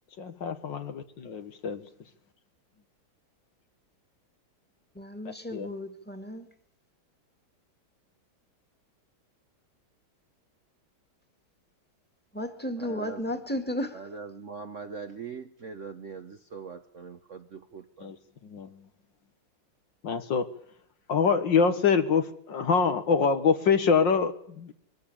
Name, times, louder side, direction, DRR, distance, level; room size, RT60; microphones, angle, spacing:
voice 1, 0.2-1.8 5.5-5.7 18.0-18.2 18.4-18.7 20.0-20.5 21.1-24.7, left 5 dB, 65° left, 2.1 m, -25 dB
voice 2, 4.9-6.5 12.3-14.0, left 1 dB, 5° left, 2.1 m, -34 dB
voice 3, 12.8-13.4 13.9-18.1, right 5 dB, 50° right, 1.0 m, -42 dB
23.5 x 14.0 x 8.6 m
omnidirectional pair, 2.2 m